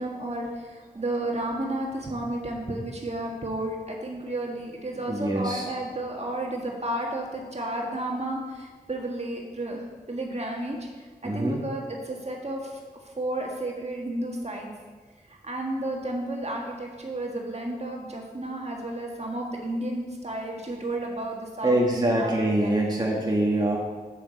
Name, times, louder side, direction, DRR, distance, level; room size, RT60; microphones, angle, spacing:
voice 1, 0.0-12.8 13.2-14.7 15.3-22.3 22.6-22.7 23.0-23.2, right 1 dB, 45° right, 0 dB, 1.7 m, -32 dB
voice 2, 5.1-5.6 11.2-11.6 21.6-23.8, right 1 dB, 25° right, -2 dB, 1.5 m, -24 dB
7.8 x 7.1 x 5.2 m, 1.4 s
cardioid pair, 40°, 16 cm